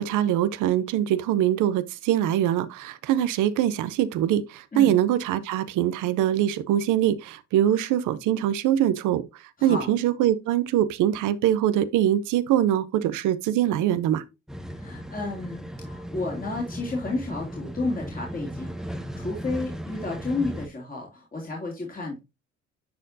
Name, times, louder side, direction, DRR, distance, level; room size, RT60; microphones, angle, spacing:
voice 1, 0.0-14.2, right 11 dB, 90° right, 0.6 m, -23 dB
voice 2, 9.6-9.9 14.7-22.2, left 2 dB, 30° left, 2.5 m, -32 dB
sound 1, 14.5-20.7, equal, ahead, 0.8 m, -36 dB
10.5 x 4.3 x 2.7 m
cardioid pair, 90°, 30 cm